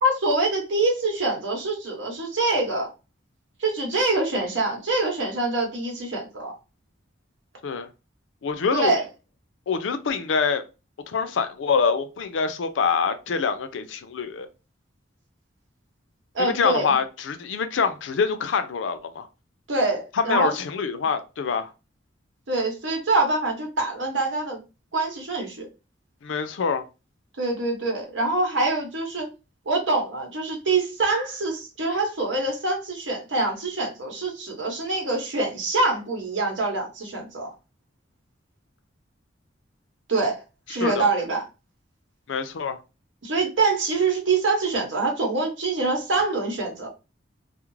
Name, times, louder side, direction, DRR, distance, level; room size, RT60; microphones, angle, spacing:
voice 1, 0.0-2.9 3.6-6.5 8.7-9.0 16.3-16.9 19.7-20.5 22.5-24.6 24.9-25.7 27.4-29.3 29.7-37.5 40.1-40.4 40.7-41.4 43.2-46.9, right 3 dB, 80° right, 1.0 m, -25 dB
voice 2, 8.4-9.0 9.7-10.6 11.1-14.5 16.4-19.3 20.1-21.7 26.2-26.8 40.8-41.1 42.3-42.8, left 5 dB, 80° left, 0.4 m, -25 dB
2.4 x 2.0 x 3.0 m
head